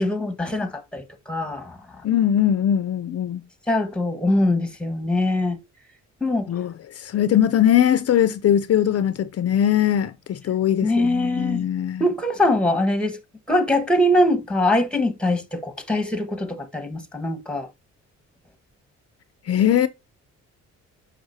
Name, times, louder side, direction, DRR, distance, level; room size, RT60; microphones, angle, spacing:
voice 1, 0.0-1.8 3.7-5.6 6.2-6.5 10.8-11.7 12.0-13.2 13.5-17.7, left 1 dB, 5° left, 1.4 m, -22 dB
voice 2, 2.0-3.4 6.5-12.0 19.5-19.9, left 10 dB, 55° left, 0.6 m, -21 dB
7.9 x 6.0 x 2.7 m
cardioid pair, 90°, 30 cm